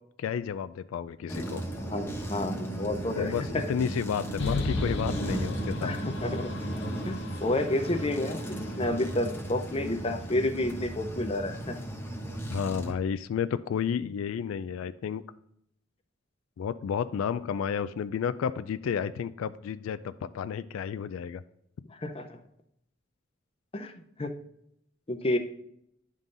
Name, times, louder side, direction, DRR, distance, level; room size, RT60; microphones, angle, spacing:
voice 1, 0.2-1.6 3.2-5.9 12.5-15.2 16.6-21.4, left 7 dB, 85° left, 13 dB, 0.3 m, -31 dB
sound 1, 1.3-12.9, right 1 dB, 10° left, 1.0 m, -36 dB
voice 2, 1.9-3.6 5.8-6.5 7.1-11.8 21.9-22.4 23.7-24.3 25.1-25.4, left 1 dB, 25° left, 6 dB, 0.6 m, -30 dB
sound 2, 4.4-9.9, left 2 dB, 60° left, 0.8 m, -36 dB
10.5 x 3.8 x 3.9 m, 0.74 s
head